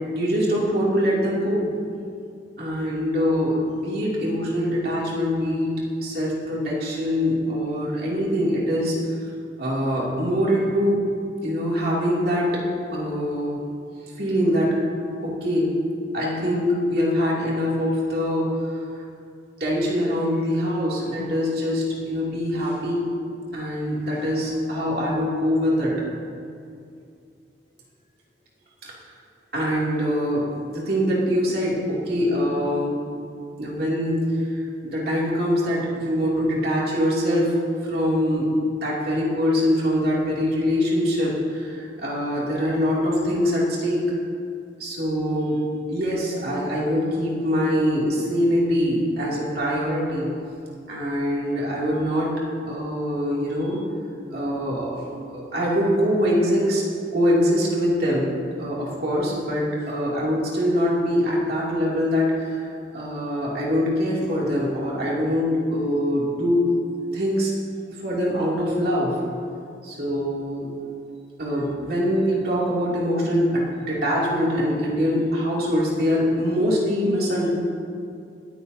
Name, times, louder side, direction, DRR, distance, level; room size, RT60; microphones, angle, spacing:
voice 1, 0.1-1.7 2.6-9.1 9.6-11.0 11.4-12.6 12.9-13.6 14.2-14.8 15.2-15.7 16.1-19.0 19.6-23.1 23.5-26.0 29.5-30.4 30.7-33.0 33.6-38.5 38.8-44.0 44.8-45.6 45.9-50.3 50.9-52.3 52.7-53.8 54.3-55.0 55.3-56.8 57.1-58.3 58.6-66.7 67.1-67.5 68.0-69.2 69.8-70.7 71.4-77.5, equal, 60° right, -6 dB, 2.7 m, -23 dB
18.5 x 9.2 x 2.8 m, 2.4 s
head